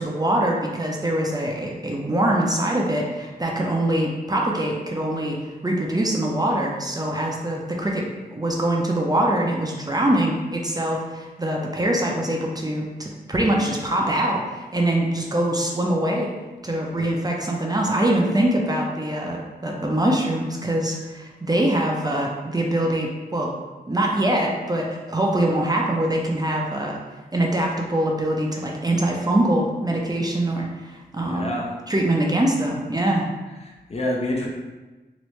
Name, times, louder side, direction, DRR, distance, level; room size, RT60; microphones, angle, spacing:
voice 1, 0.0-8.1 8.3-16.3 16.6-23.5 23.9-27.0 27.3-31.5 31.9-33.3, right 1 dB, 20° right, -1 dB, 0.5 m, -23 dB
voice 2, 31.2-31.7 33.6-34.5, left 1 dB, 40° left, -1 dB, 0.6 m, -28 dB
3.0 x 2.6 x 3.1 m, 1.2 s
cardioid pair, 60°, 17 cm